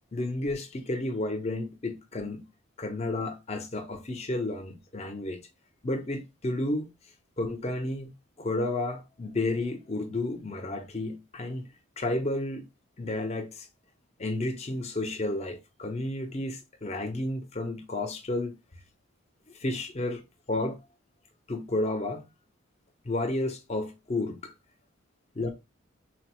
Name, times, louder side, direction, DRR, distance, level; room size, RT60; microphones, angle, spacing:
voice 1, 0.1-2.4 2.8-5.4 5.8-6.9 7.4-8.1 8.4-11.7 12.0-12.6 13.0-13.7 14.2-18.6 19.5-20.2 20.5-20.8 21.5-22.2 23.0-24.5 25.4-25.5, left 2 dB, 30° left, 0.6 m, -31 dB
4.1 x 2.0 x 2.8 m
head